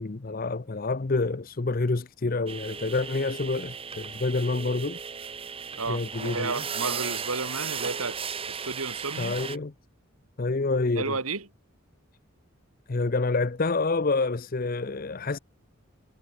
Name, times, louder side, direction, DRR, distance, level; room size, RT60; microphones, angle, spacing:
voice 1, 0.0-5.0 5.9-6.5 9.2-9.7 10.4-11.2 12.9-15.4, left 3 dB, 40° left, 0.6 m, -28 dB
sound 1, 2.5-9.6, right 6 dB, 25° right, 1.4 m, -36 dB
voice 2, 5.8-8.2 8.5-9.4 11.0-11.5, right 3 dB, 90° right, 4.0 m, -32 dB
head